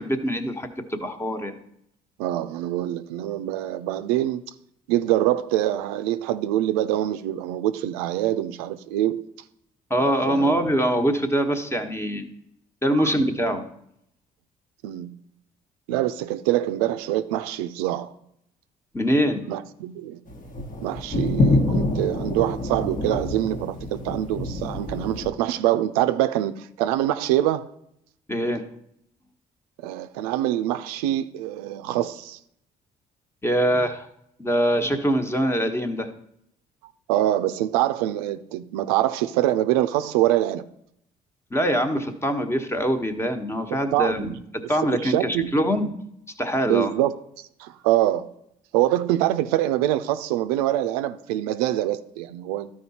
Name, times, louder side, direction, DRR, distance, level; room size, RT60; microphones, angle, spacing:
voice 1, 0.0-1.6 9.9-12.3 12.8-13.6 18.9-19.4 28.3-28.6 33.4-34.1 34.4-36.1 41.5-44.3 44.7-45.9 46.4-46.9, equal, 15° left, 1.2 m, -23 dB
voice 2, 2.2-4.4 4.9-9.3 10.0-10.5 12.9-13.1 14.8-15.1 15.9-18.1 19.5-20.2 20.8-27.7 29.8-32.4 37.1-40.6 43.9-44.4 45.0-45.5 46.6-48.3 48.7-52.7, right 13 dB, 90° right, 0.4 m, -24 dB
sound 1, 20.3-25.3, left 2 dB, 45° left, 1.3 m, -26 dB
12.0 x 4.8 x 4.2 m
hypercardioid pair, 60°, 19 cm